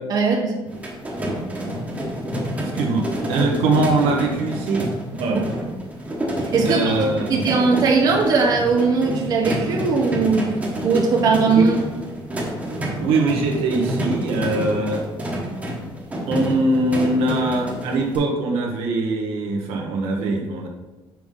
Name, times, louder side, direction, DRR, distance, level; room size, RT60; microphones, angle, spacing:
voice 1, 0.1-0.5 6.4-7.0 7.3-10.5 10.8-11.8, right 4 dB, 40° right, 0 dB, 1.0 m, -19 dB
sound 1, 0.7-18.2, right 1 dB, 15° right, 1.1 m, -28 dB
voice 2, 2.6-5.5 6.6-7.5 11.5-11.7 13.0-15.0 16.3-20.7, right 2 dB, 85° right, 0 dB, 1.1 m, -22 dB
6.0 x 4.9 x 3.8 m, 1.1 s
cardioid pair, 165°, 10 cm